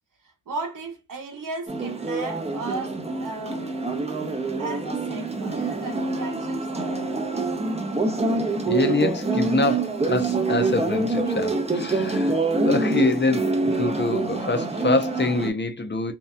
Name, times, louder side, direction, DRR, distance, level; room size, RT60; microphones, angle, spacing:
voice 1, 0.2-3.7 4.6-7.7, right 3 dB, 75° right, 0.9 m, -36 dB
sound 1, 1.7-15.5, right 3 dB, 20° right, 0.6 m, -26 dB
voice 2, 8.7-16.1, left 3 dB, 35° left, 0.6 m, -25 dB
2.7 x 2.3 x 2.2 m
cardioid pair, 50°, 33 cm